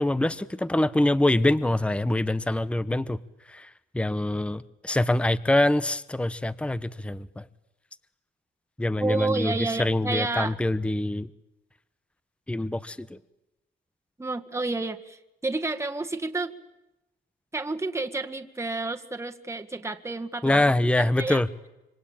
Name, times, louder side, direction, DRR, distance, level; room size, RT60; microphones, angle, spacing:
voice 1, 0.0-3.2 3.5-7.5 8.8-11.3 12.5-13.2 20.4-21.5, left 1 dB, 5° left, 15 dB, 1.0 m, -25 dB
voice 2, 9.0-10.6 14.2-16.5 17.5-20.7 21.0-21.4, right 3 dB, 15° right, 6 dB, 1.8 m, -30 dB
26.5 x 24.5 x 8.9 m, 0.97 s
cardioid pair, 90°, 20 cm